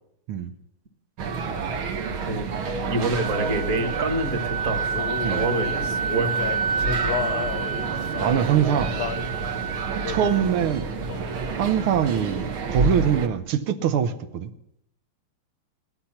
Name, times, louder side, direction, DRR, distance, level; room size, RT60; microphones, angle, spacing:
sound 1, 1.2-13.3, right 4 dB, 75° right, 2.1 m, -29 dB
Wind instrument woodwind instrument, 2.8-10.6, right 6 dB, 55° right, 1.1 m, -30 dB
voice 1, 2.9-4.9 5.3-6.5, right 2 dB, 40° right, 6 dB, 2.0 m, -27 dB
Male singing, 4.9-9.3 10.0-10.5 11.1-11.4 11.6-12.6, left 10 dB, 70° left, 0.9 m, -33 dB
voice 2, 8.2-9.0 10.1-10.9 11.6-14.5, right 9 dB, 90° right, 9 dB, 1.8 m, -23 dB
17.0 x 12.0 x 5.8 m, 0.76 s
omnidirectional pair, 2.3 m